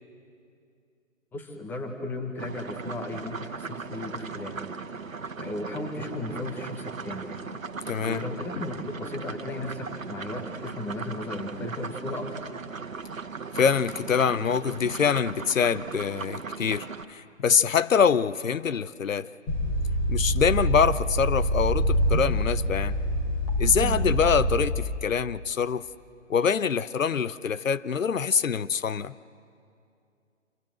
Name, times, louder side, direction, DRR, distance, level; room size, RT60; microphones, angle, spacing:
voice 1, 1.3-4.6 5.4-7.3 8.0-12.3 23.8-24.0, left 2 dB, 5° left, 4 dB, 1.2 m, -35 dB
sound 1, 2.4-17.1, right 5 dB, 85° right, 1.4 m, -38 dB
voice 2, 7.9-8.2 13.5-19.3 20.1-23.0 23.6-25.8 26.3-29.1, left 7 dB, 80° left, 17 dB, 0.8 m, -25 dB
sound 2, 19.5-24.8, equal, 20° left, 3.2 m, -25 dB
26.5 x 24.0 x 7.8 m, 2.4 s
figure-of-eight pair, 150°, 39 cm